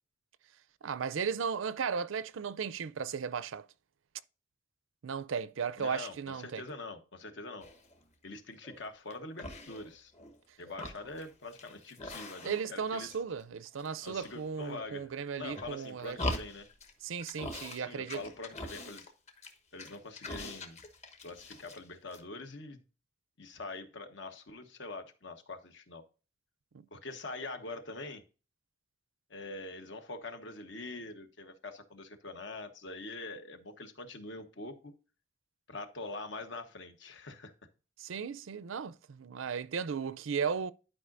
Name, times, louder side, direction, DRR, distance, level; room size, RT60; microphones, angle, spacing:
voice 1, 0.8-3.7 5.0-6.6 12.4-16.2 17.0-18.2 38.0-40.7, right 6 dB, 85° right, 0.5 m, -35 dB
voice 2, 5.8-7.6 8.2-10.1 10.6-13.2 14.0-15.1 15.4-16.7 17.8-19.1 19.7-20.8 21.2-22.8 23.4-26.0 26.9-28.2 29.3-34.9 35.7-37.5, left 3 dB, 65° left, 1.1 m, -44 dB
sound 1, 7.6-8.0 8.5-9.1 9.4-10.4 10.6-12.8 13.1-13.9 14.1-14.9 15.4-16.9 17.2-17.8 18.1-21.8 22.1-22.2, left 1 dB, 35° left, 1.2 m, -42 dB
11.5 x 5.0 x 2.5 m
head